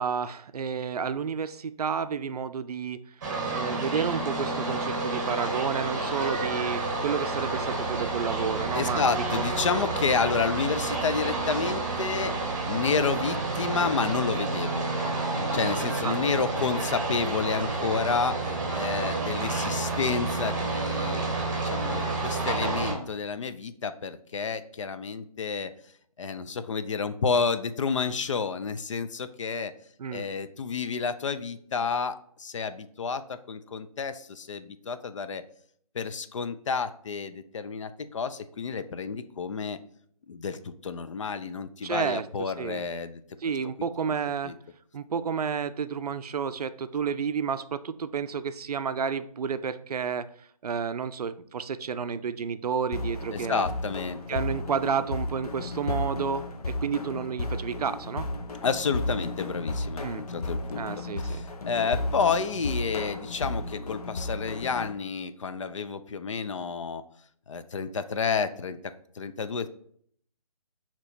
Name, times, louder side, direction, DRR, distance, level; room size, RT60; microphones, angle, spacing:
voice 1, 0.0-3.0 3.5-9.0 9.3-9.4 16.0-16.2 30.0-30.3 41.8-42.9 43.4-44.5 44.9-50.3 50.6-53.6 54.3-58.3 60.0-60.3 60.8-61.4, right 6 dB, 85° right, 12 dB, 0.4 m, -31 dB
sound 1, 3.2-22.9, right 3 dB, 30° right, 0.8 m, -29 dB
voice 2, 8.7-12.4 12.7-14.8 15.5-21.2 21.6-25.7 26.2-29.7 30.1-35.4 35.9-39.8 40.3-43.2 44.4-44.5 53.3-54.2 58.6-60.8 61.2-67.0 67.5-69.7, left 5 dB, 55° left, 12 dB, 0.4 m, -30 dB
sound 2, 52.9-64.9, left 2 dB, 80° left, 0.7 m, -33 dB
6.0 x 2.9 x 2.7 m, 0.62 s
hypercardioid pair, 165°, 19 cm